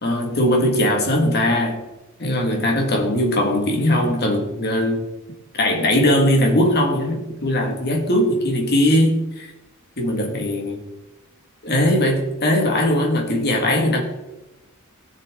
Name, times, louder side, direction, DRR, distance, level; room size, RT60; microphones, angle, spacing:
voice 1, 0.0-1.8 2.2-5.0 5.5-9.5 10.0-10.8 11.6-14.0, left 1 dB, 50° left, 2 dB, 2.1 m, -20 dB
18.5 x 6.5 x 3.8 m, 1.0 s
head